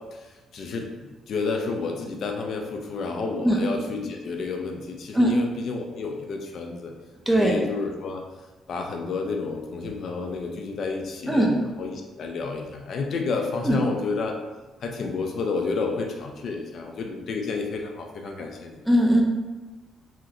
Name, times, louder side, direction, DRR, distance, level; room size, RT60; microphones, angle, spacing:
voice 1, 0.1-6.9 7.4-8.2 8.7-14.4 14.8-18.8, left 4 dB, 60° left, 2 dB, 0.4 m, -30 dB
voice 2, 18.9-19.2, right 1 dB, 5° right, -1 dB, 0.6 m, -19 dB
3.6 x 2.1 x 2.8 m, 1.2 s
cardioid pair, 90°, 0 cm